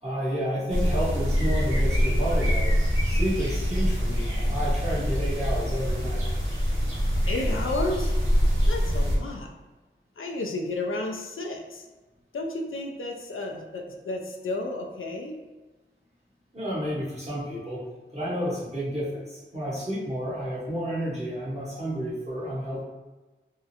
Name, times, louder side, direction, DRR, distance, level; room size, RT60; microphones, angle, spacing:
voice 1, 0.0-2.7 3.0-6.2 16.5-17.8 18.1-22.8, equal, 35° right, -8 dB, 1.3 m, -30 dB
sound 1, 0.7-9.2, equal, 80° right, 0.9 m, -24 dB
voice 2, 7.3-8.1 8.7-9.5 10.2-11.9 12.3-15.4, left 2 dB, 80° left, 2 dB, 0.4 m, -32 dB
3.5 x 2.1 x 2.8 m, 1.2 s
wide cardioid pair, 60°, 21 cm